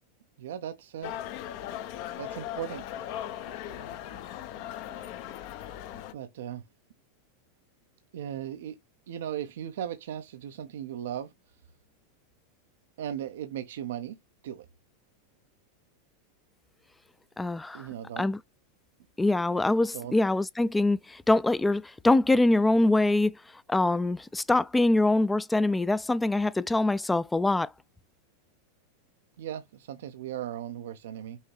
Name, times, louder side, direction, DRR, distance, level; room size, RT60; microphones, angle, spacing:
voice 1, 0.4-1.1 2.2-2.8 6.1-6.6 8.1-8.8 9.1-11.3 13.0-14.2 14.4-14.7 17.7-18.3 19.9-20.1 29.4-31.4, right 10 dB, 80° right, 0.5 m, -37 dB
sound 1, 1.0-6.1, left 11 dB, 55° left, 0.6 m, -38 dB
voice 2, 17.4-17.9 18.2-18.4 19.2-23.4 23.7-27.7, left 2 dB, 10° left, 0.3 m, -24 dB
5.5 x 2.8 x 3.1 m
hypercardioid pair, 120°, 0 cm